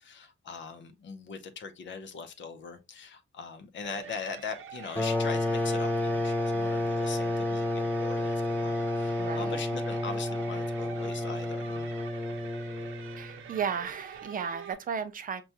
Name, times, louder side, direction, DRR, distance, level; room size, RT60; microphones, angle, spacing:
voice 1, 0.0-12.0, left 5 dB, 60° left, 0.7 m, -41 dB
sound 1, 3.8-14.7, right 7 dB, 75° right, 0.7 m, -46 dB
sound 2, 5.0-13.3, left 2 dB, 10° left, 0.6 m, -30 dB
voice 2, 9.2-9.6 13.2-15.4, right 7 dB, 40° right, 0.4 m, -34 dB
5.8 x 2.3 x 2.7 m
wide cardioid pair, 180°, 21 cm